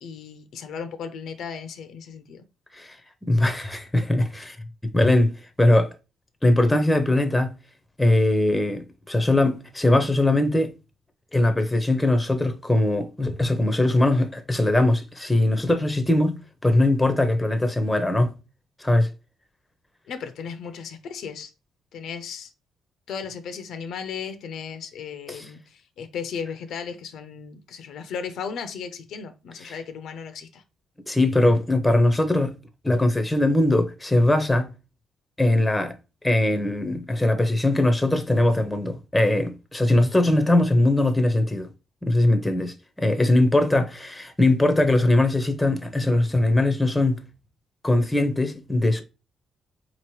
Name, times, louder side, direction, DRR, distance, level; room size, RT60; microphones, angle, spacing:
voice 1, 0.0-2.4 20.1-21.5 21.9-22.5 23.1-30.6, left 6 dB, 75° left, 0.5 m, -35 dB
voice 2, 3.2-4.6 4.9-5.3 5.6-5.9 6.4-7.5 8.0-10.7 11.3-18.3 18.8-19.1 25.3-25.4 29.7-29.8 31.1-32.6 32.8-34.7 35.4-36.0 36.2-41.7 42.0-47.2 47.8-49.0, left 1 dB, 10° left, 0.7 m, -21 dB
4.1 x 2.9 x 3.0 m
cardioid pair, 90°, 0 cm